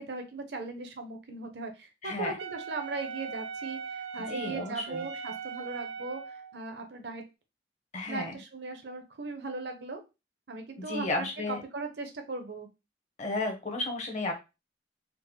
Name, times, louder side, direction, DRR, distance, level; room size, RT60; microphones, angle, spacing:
voice 1, 0.0-7.2 8.1-10.0 10.5-12.7, right 3 dB, 65° right, 5 dB, 0.7 m, -38 dB
voice 2, 2.0-2.3 4.3-5.1 7.9-8.4 10.9-11.6 13.2-14.3, left 2 dB, 40° left, 3 dB, 0.8 m, -33 dB
Wind instrument woodwind instrument, 2.4-6.6, right 6 dB, 85° right, 0.4 m, -40 dB
3.7 x 2.1 x 3.0 m, 0.27 s
head